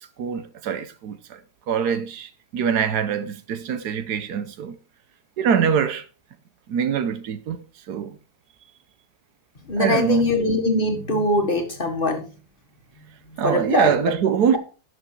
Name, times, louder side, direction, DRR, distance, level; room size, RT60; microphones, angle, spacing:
voice 1, 0.2-1.4 1.7-4.8 5.4-6.0 6.7-7.6 7.9-8.2 9.8-10.4 13.4-14.6, right 7 dB, 80° right, 1.4 m, -23 dB
voice 2, 9.7-12.3 13.3-13.9, left 1 dB, 35° left, 1.8 m, -22 dB
11.5 x 6.3 x 4.5 m
omnidirectional pair, 1.7 m